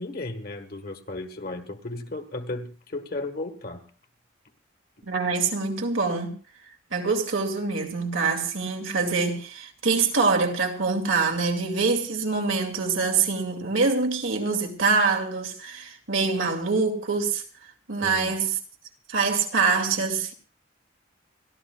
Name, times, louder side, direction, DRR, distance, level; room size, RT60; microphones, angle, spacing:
voice 1, 0.0-3.9 18.0-18.4, left 2 dB, 50° left, 1.5 m, -35 dB
voice 2, 5.1-6.3 6.9-17.4 17.9-18.6 19.1-20.3, right 4 dB, 85° right, 2.5 m, -25 dB
30.0 x 12.5 x 2.4 m
head